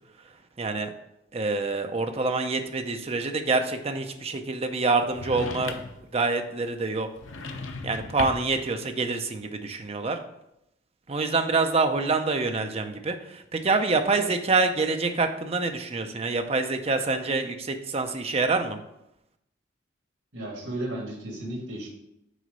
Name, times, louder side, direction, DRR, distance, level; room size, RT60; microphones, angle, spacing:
voice 1, 0.6-0.9 1.3-5.7 6.1-7.1 7.8-10.2 11.1-18.8, right 3 dB, 30° right, 6 dB, 0.6 m, -26 dB
sound 1, 5.1-6.1 7.2-8.6, left 3 dB, 80° left, 0.7 m, -36 dB
voice 2, 20.3-21.9, right 1 dB, 80° right, -2 dB, 2.4 m, -34 dB
6.3 x 3.9 x 5.3 m, 0.81 s
head